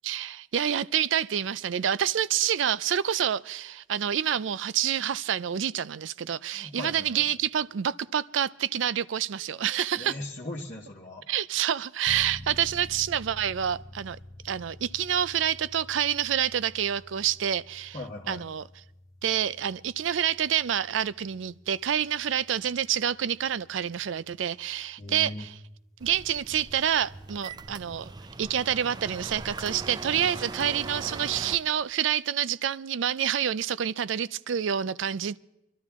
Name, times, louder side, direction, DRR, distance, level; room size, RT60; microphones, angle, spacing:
voice 1, 0.0-10.2 11.3-14.2 14.4-18.0 18.3-18.6 19.2-25.5 26.0-28.1 28.4-35.4, right 9 dB, 70° right, 0.4 m, -28 dB
voice 2, 6.5-7.3 10.0-11.2 17.9-18.5 25.0-25.4, left 1 dB, 40° left, 1.3 m, -39 dB
sound 1, 12.1-26.5, left 1 dB, 20° left, 1.0 m, -49 dB
sound 2, 26.0-31.6, right 3 dB, 20° right, 0.5 m, -40 dB
25.0 x 12.0 x 3.6 m
head